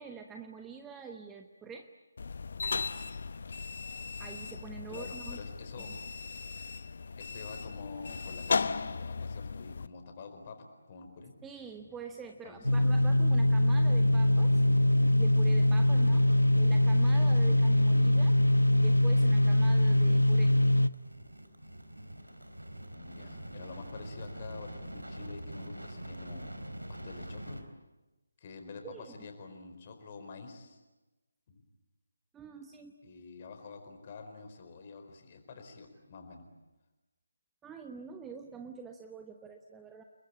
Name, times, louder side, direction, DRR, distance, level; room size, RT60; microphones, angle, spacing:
voice 1, 0.0-1.9 4.2-5.4 5.8-5.9 11.4-14.6 15.2-16.3 16.5-20.5 28.8-29.3 32.3-33.0 37.6-40.0, right 5 dB, 10° right, 5 dB, 1.1 m, -46 dB
sound 1, 2.2-9.9, left 4 dB, 50° left, 0.9 m, -36 dB
voice 2, 4.9-5.9 7.2-11.3 12.4-13.0 16.3-16.5 22.9-26.5 26.9-27.6 28.4-30.8 31.5-31.6 33.0-36.4, left 4 dB, 30° left, 6 dB, 4.5 m, -47 dB
sound 2, 12.6-20.9, left 1 dB, 85° left, 0.9 m, -23 dB
sound 3, 20.1-27.6, right 1 dB, 85° right, 4.1 m, -44 dB
29.5 x 21.5 x 8.7 m, 1.1 s
figure-of-eight pair, 150°, 0 cm